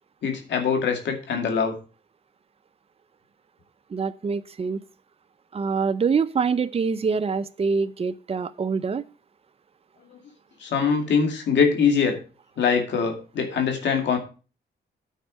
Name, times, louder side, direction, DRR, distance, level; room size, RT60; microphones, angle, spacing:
voice 1, 0.2-1.7 10.1-10.2 10.6-12.2 12.6-14.2, left 6 dB, 80° left, 4 dB, 2.5 m, -23 dB
voice 2, 3.9-4.8 5.5-9.0, right 5 dB, 35° right, 12 dB, 0.6 m, -25 dB
9.2 x 4.5 x 7.4 m, 0.35 s
cardioid pair, 90°, 18 cm